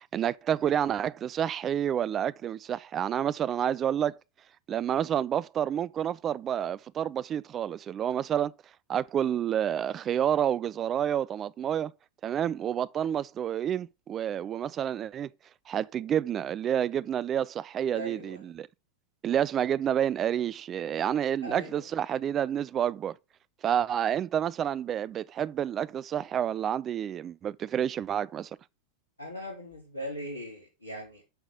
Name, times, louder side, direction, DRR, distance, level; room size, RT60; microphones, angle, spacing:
voice 1, 0.0-4.2 4.7-8.5 8.9-11.9 12.2-15.3 15.7-18.7 19.2-23.1 23.6-28.5, right 9 dB, 25° right, 0.4 m, -29 dB
voice 2, 17.9-18.5 21.4-21.9 29.2-31.2, equal, 80° left, 3.0 m, -39 dB
7.9 x 6.1 x 5.0 m
figure-of-eight pair, 90°, 0 cm